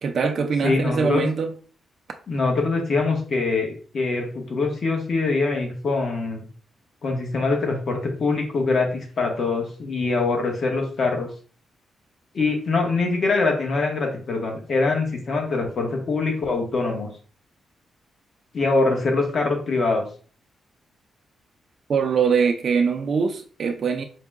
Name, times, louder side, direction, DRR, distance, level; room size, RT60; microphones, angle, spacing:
voice 1, 0.0-1.5 21.9-24.0, right 5 dB, 50° right, 0.4 m, -22 dB
voice 2, 0.6-1.3 2.3-6.4 7.0-11.3 12.3-17.1 18.5-20.0, left 3 dB, 45° left, 1.1 m, -23 dB
4.6 x 2.1 x 3.5 m
cardioid pair, 135°, 0 cm